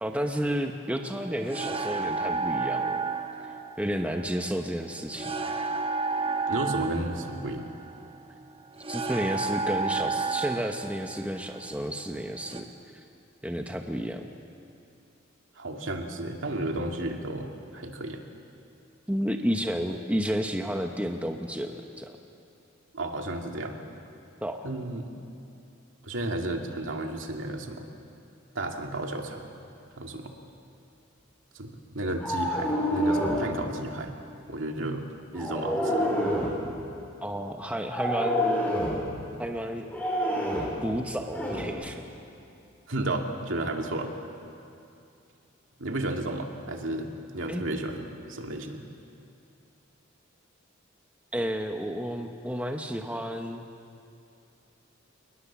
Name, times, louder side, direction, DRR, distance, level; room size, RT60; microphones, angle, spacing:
voice 1, 0.0-3.0 3.4-5.3 8.9-12.7 12.9-13.0 13.4-14.3 19.1-22.1 24.4-24.7 37.2-38.4 39.4-39.9 40.8-42.0 47.5-47.6 51.3-53.7, equal, 5° right, 4 dB, 0.9 m, -31 dB
sound 1, 0.9-12.6, right 4 dB, 30° right, 1.0 m, -32 dB
voice 2, 6.5-7.7 15.6-18.2 22.9-23.8 24.6-25.1 26.0-27.9 28.5-29.4 30.0-30.3 31.5-34.1 34.5-35.0 35.3-36.1 42.9-44.1 45.8-48.9, right 1 dB, 70° right, 2 dB, 2.3 m, -33 dB
sound 2, 32.2-33.5 35.3-36.6 37.9-39.0 39.9-40.8 41.3-41.7, equal, 10° left, 4.8 m, -27 dB
27.5 x 20.0 x 7.4 m, 2.7 s
head